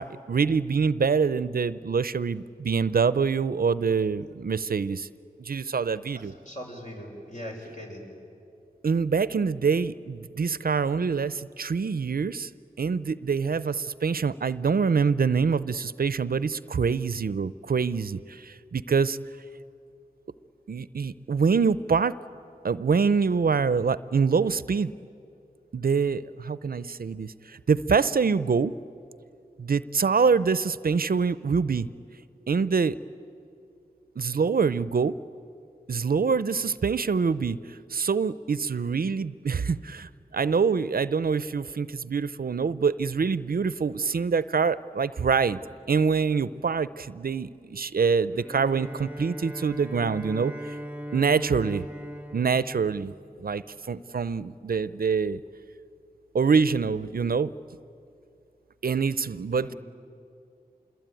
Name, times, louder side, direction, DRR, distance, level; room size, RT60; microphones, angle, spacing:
voice 1, 0.0-5.1 5.4-6.3 8.8-12.5 12.8-19.2 20.7-22.2 22.6-24.9 25.7-28.7 29.6-31.9 32.5-33.0 34.2-35.1 35.9-37.6 37.9-45.6 45.9-50.5 51.1-51.9 52.3-55.4 56.3-57.5 58.8-59.7, right 5 dB, 70° right, 16 dB, 0.6 m, -25 dB
voice 2, 6.1-8.1 59.6-59.8, equal, 50° left, 0 dB, 6.0 m, -40 dB
Bowed string instrument, 48.3-53.6, equal, 10° right, 0.8 m, -39 dB
27.0 x 22.0 x 9.1 m, 2.5 s
wide cardioid pair, 55°, 16 cm